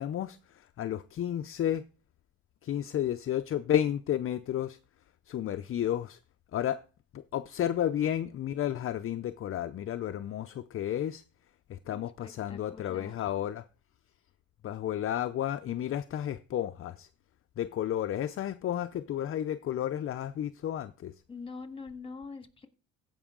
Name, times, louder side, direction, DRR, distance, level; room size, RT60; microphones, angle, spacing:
voice 1, 0.0-1.8 2.6-4.8 5.3-6.2 6.5-6.8 7.1-11.2 11.7-13.6 14.6-17.1 17.6-21.1, left 11 dB, 45° left, 0.5 m, -32 dB
voice 2, 11.9-13.3 21.3-22.7, left 4 dB, 20° left, 1.6 m, -44 dB
15.5 x 5.5 x 3.7 m
cardioid pair, 90°, 30 cm